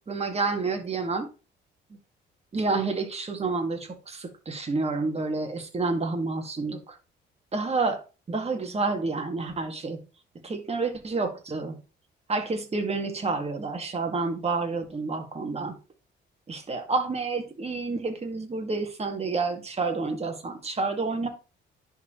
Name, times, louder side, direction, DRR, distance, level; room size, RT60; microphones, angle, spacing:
voice 1, 0.1-1.3 2.5-6.9 7.5-8.0 8.3-10.0 10.4-11.8 12.3-15.8 16.5-21.3, right 3 dB, 30° right, 2.0 m, -29 dB
11.0 x 4.3 x 3.1 m
cardioid pair, 90°, 20 cm